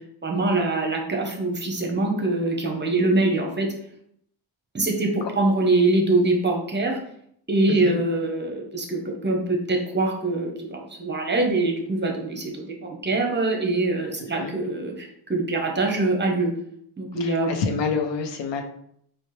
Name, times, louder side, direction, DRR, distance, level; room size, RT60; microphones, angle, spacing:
voice 1, 0.2-3.7 4.7-7.0 7.5-16.5 17.0-17.5, right 2 dB, 20° right, 1 dB, 0.8 m, -24 dB
voice 2, 7.7-8.0 14.4-14.6 17.2-18.6, left 5 dB, 60° left, 5 dB, 0.7 m, -28 dB
4.2 x 2.1 x 3.2 m, 0.69 s
cardioid pair, 90°, 49 cm